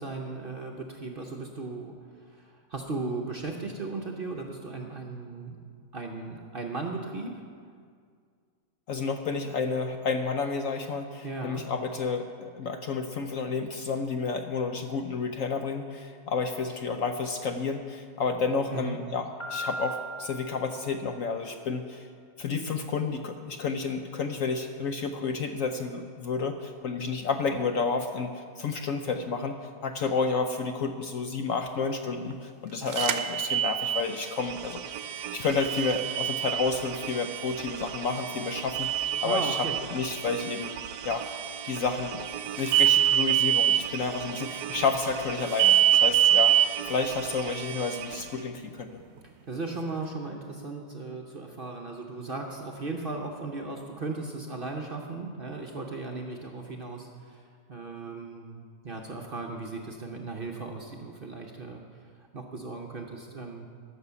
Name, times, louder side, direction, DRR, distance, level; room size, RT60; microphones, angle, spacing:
voice 1, 0.0-2.0 2.3-5.6 5.9-7.4 11.2-11.6 18.7-19.0 39.2-39.8 49.5-57.4 57.7-61.8 62.3-63.7, right 3 dB, 45° right, 1 dB, 0.8 m, -36 dB
voice 2, 8.9-22.1 22.4-34.8 35.1-39.6 39.9-40.8 41.0-41.3 41.6-42.2 42.6-49.0, left 4 dB, 65° left, 6 dB, 0.8 m, -30 dB
Piano, 19.4-21.3, equal, 20° left, 2.4 m, -38 dB
sound 1, 32.9-34.0 35.6-36.7 38.7-39.8 42.7-43.8 45.6-46.7, right 11 dB, 65° right, 1.1 m, -23 dB
sound 2, 33.7-48.5, right 9 dB, 90° right, 1.2 m, -39 dB
14.5 x 6.2 x 6.9 m, 2.1 s
omnidirectional pair, 1.8 m